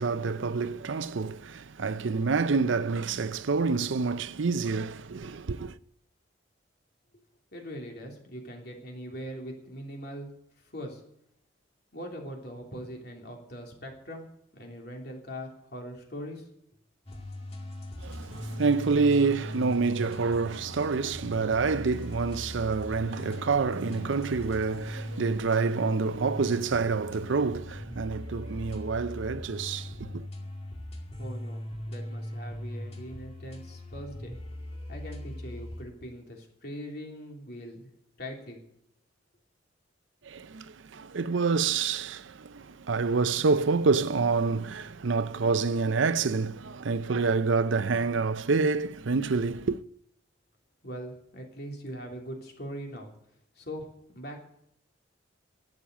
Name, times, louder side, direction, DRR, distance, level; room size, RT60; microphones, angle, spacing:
voice 1, 0.0-5.8 18.0-30.3 40.2-49.8, right 4 dB, 75° right, 0.6 m, -27 dB
voice 2, 7.5-10.3 10.6-11.0 11.9-14.3 14.5-16.5 31.2-34.4 34.9-37.9 38.2-38.6 50.8-53.1 53.5-54.4, equal, 55° left, 3.3 m, -41 dB
sound 1, 17.1-35.8, left 1 dB, 30° left, 2.1 m, -39 dB
12.0 x 8.7 x 9.1 m
head